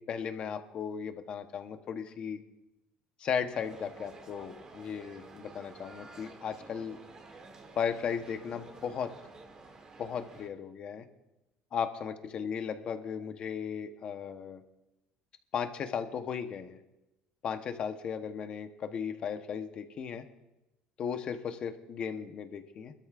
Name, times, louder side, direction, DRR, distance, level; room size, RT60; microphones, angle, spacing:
voice 1, 0.0-2.4 3.2-7.0 7.8-9.1 10.0-11.1 11.7-14.6 15.5-16.8 17.4-20.2 21.0-22.9, left 7 dB, 40° left, 8 dB, 1.0 m, -36 dB
sound 1, 3.5-10.5, right 3 dB, 25° right, 1.4 m, -51 dB
25.0 x 13.0 x 2.5 m, 0.97 s
cardioid pair, 155°, 3 cm